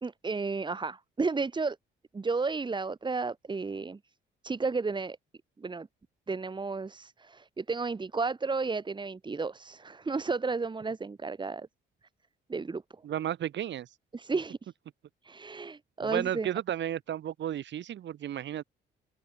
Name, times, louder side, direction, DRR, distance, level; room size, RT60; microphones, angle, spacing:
voice 1, 0.0-1.8 2.1-4.0 4.4-5.2 5.6-5.9 6.3-11.7 12.5-12.8 14.1-14.7 15.2-16.5, right 4 dB, 25° right, 1.2 m, -32 dB
voice 2, 13.0-13.9 16.0-18.6, right 11 dB, 65° right, 1.8 m, -33 dB
open air
cardioid pair, 90°, 20 cm